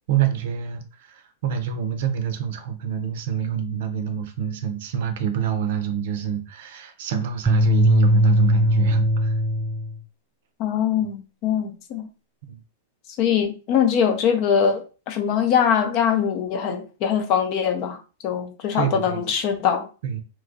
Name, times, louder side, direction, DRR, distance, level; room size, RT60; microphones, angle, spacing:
voice 1, 0.1-9.3 12.5-12.6 18.7-19.3 20.0-20.2, right 8 dB, 65° right, 0.5 m, -27 dB
sound 1, 7.5-10.0, equal, 20° right, 0.4 m, -18 dB
voice 2, 10.6-12.1 13.2-19.9, left 8 dB, 50° left, 0.6 m, -22 dB
2.9 x 2.3 x 2.5 m
hypercardioid pair, 110°, 0 cm